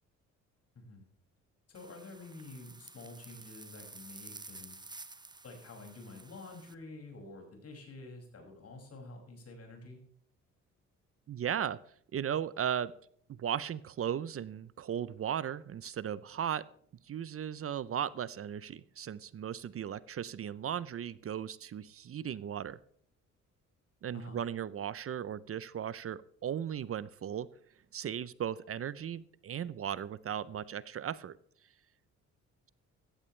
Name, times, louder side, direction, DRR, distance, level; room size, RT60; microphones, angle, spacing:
voice 1, 0.7-1.1 1.7-4.8 5.4-10.0 24.1-24.4, left 2 dB, 50° left, 3 dB, 6.3 m, -49 dB
sound 1, 1.7-6.7, right 3 dB, 15° right, 0.9 m, -51 dB
voice 2, 11.3-11.8 12.1-12.9 13.3-16.7 17.0-22.8 24.0-27.5 27.9-31.4, right 9 dB, 50° right, 18 dB, 0.7 m, -36 dB
15.5 x 14.5 x 3.3 m, 0.62 s
cardioid pair, 90°, 30 cm